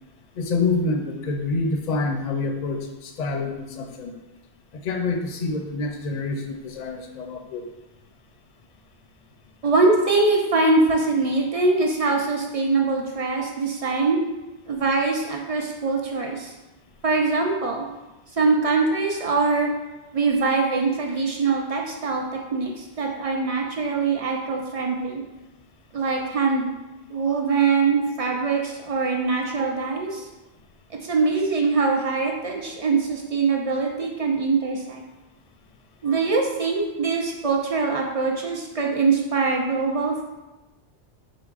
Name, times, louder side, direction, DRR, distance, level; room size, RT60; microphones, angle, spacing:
voice 1, 0.4-4.1 4.7-7.6 29.6-29.7, left 3 dB, 55° left, 4 dB, 0.5 m, -27 dB
voice 2, 9.6-14.2 14.7-16.5 17.0-17.9 18.4-19.7 20.1-25.2 25.9-26.7 27.1-30.3 31.0-35.0 36.0-40.2, right 4 dB, 50° right, 0 dB, 0.4 m, -23 dB
5.1 x 3.8 x 2.4 m, 1.1 s
omnidirectional pair, 1.1 m